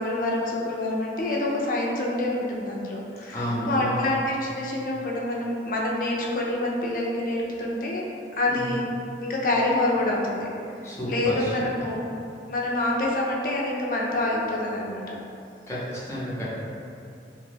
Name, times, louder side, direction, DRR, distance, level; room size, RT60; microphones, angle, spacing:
voice 1, 0.0-8.0 8.3-8.9 9.2-10.5 10.8-12.0 12.5-15.2, left 1 dB, 50° left, -2 dB, 0.4 m, -27 dB
voice 2, 3.3-4.1 8.5-8.7 10.8-11.6 15.7-16.5, equal, 15° left, -9 dB, 0.6 m, -30 dB
2.9 x 2.2 x 3.2 m, 2.5 s
head